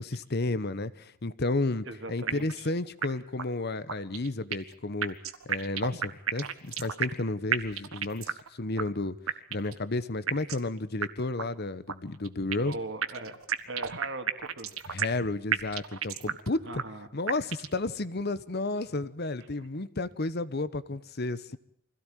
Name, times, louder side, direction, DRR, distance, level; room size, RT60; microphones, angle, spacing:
voice 1, 0.0-5.2 5.5-9.2 9.5-12.8 14.9-16.8 17.1-21.6, left 2 dB, 50° left, 15 dB, 1.0 m, -32 dB
voice 2, 1.9-2.7 12.6-13.4 13.6-14.9 16.6-17.1 19.6-19.7, right 2 dB, 60° right, 7 dB, 2.8 m, -40 dB
sound 1, 2.3-2.7 3.0-3.1 3.4-3.5 3.9-4.7 5.0-7.2 7.5-8.5 8.8-8.9 9.3-9.8 10.3-10.7 11.0-11.1 11.4-11.5 11.9-12.7 13.0-15.2 15.5-16.5 16.8-16.9 17.3-17.8, right 7 dB, 85° right, 1.5 m, -31 dB
25.0 x 16.5 x 9.2 m, 0.68 s
head